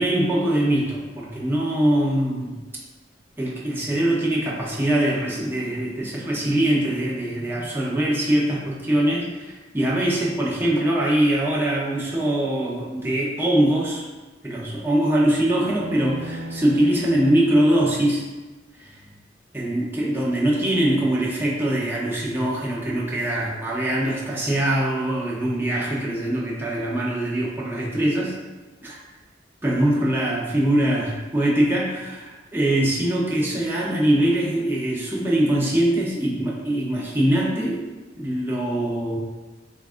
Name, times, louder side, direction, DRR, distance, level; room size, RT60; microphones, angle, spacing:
voice 1, 0.0-2.6 3.4-14.0 14.4-18.2 18.7-19.0 19.5-28.3 28.8-29.0 29.6-37.8 38.2-39.2, right 1 dB, 10° right, -5 dB, 0.7 m, -22 dB
sound 1, 15.5-17.8, right 1 dB, 90° right, 0.7 m, -35 dB
7.0 x 2.5 x 2.5 m, 1.2 s
head